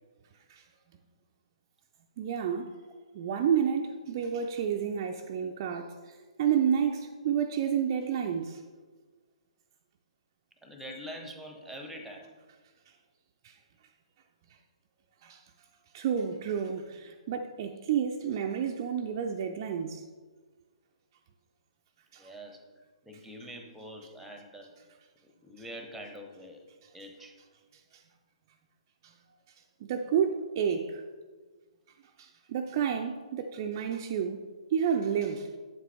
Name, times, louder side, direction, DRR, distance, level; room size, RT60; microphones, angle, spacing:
voice 1, 2.2-2.7 3.1-8.6 13.4-13.5 15.2-15.4 15.9-20.0 22.1-22.3 27.9-28.0 29.0-29.1 29.8-31.0 32.2-34.4 34.7-35.5, right 8 dB, 35° right, 0.4 m, -30 dB
voice 2, 10.6-12.3 22.2-22.6 23.0-24.7 25.2-26.6 26.9-27.3, equal, ahead, 0.9 m, -44 dB
8.1 x 7.5 x 3.4 m
figure-of-eight pair, 130°, 4 cm